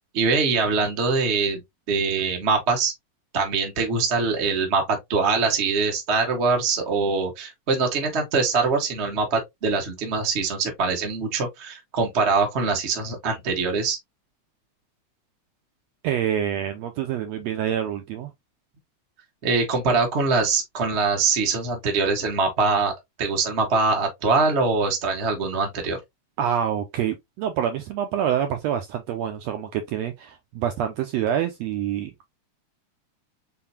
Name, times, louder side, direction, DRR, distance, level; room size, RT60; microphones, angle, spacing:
voice 1, 0.1-1.6 1.9-2.9 3.3-14.0 19.4-22.9 23.2-26.0, right 4 dB, 60° right, 0.6 m, -23 dB
voice 2, 16.0-18.3 26.4-32.1, right 9 dB, 85° right, 1.5 m, -26 dB
4.4 x 3.9 x 2.7 m
omnidirectional pair, 3.6 m